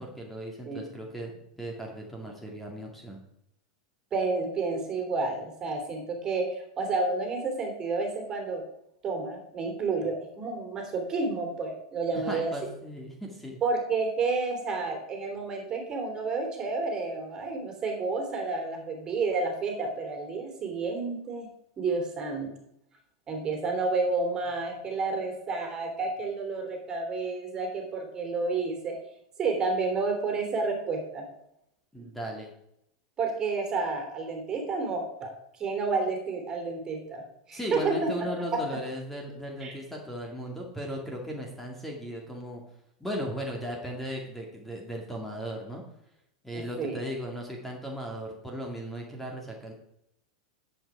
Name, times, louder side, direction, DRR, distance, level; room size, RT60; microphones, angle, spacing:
voice 1, 0.0-1.3 1.6-3.2 12.1-13.6 31.9-32.5 37.5-42.6 43.0-45.8 46.4-49.7, equal, 5° left, 0 dB, 2.3 m, -37 dB
voice 2, 4.1-8.6 9.0-12.5 13.6-21.5 21.8-22.5 23.3-28.9 29.4-31.3 32.0-32.1 33.2-35.3 35.6-38.6 39.6-39.7 46.5-47.0, right 3 dB, 30° right, 4 dB, 3.1 m, -30 dB
10.5 x 8.0 x 4.9 m, 0.79 s
hypercardioid pair, 100°, 2 cm